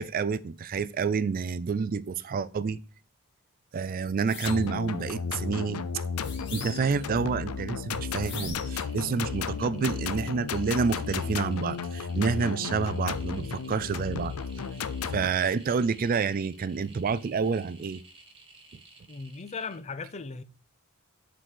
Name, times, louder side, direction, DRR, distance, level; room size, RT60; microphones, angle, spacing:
voice 1, 0.0-2.8 3.7-5.8 6.5-14.3 15.1-18.0, right 5 dB, 40° right, 0.3 m, -28 dB
sound 1, 4.3-4.7 6.2-7.0 8.2-8.8, left 5 dB, 55° left, 1.8 m, -41 dB
sound 2, 4.4-15.3, left 5 dB, 80° left, 0.6 m, -33 dB
sound 3, 6.3-6.6 6.9-7.5 7.8-19.8, right 3 dB, 25° right, 1.5 m, -54 dB
voice 2, 19.1-20.4, left 4 dB, 30° left, 0.5 m, -37 dB
7.7 x 4.0 x 6.3 m
head